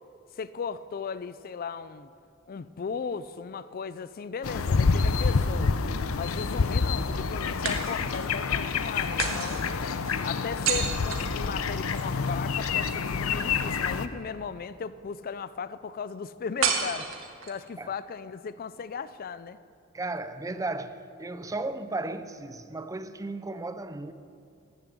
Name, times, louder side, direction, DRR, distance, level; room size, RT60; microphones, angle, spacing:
voice 1, 0.4-2.1 2.5-5.7 6.2-9.6 10.2-17.1 17.4-19.6, left 6 dB, 45° left, 0.4 m, -36 dB
sound 1, 4.4-14.1, left 4 dB, 85° left, 0.6 m, -27 dB
sound 2, 4.5-5.6 7.6-8.4 9.2-12.0 16.6-17.7, right 6 dB, 70° right, 1.5 m, -32 dB
voice 2, 19.9-24.1, right 2 dB, 15° right, 0.5 m, -35 dB
14.0 x 10.5 x 7.6 m
head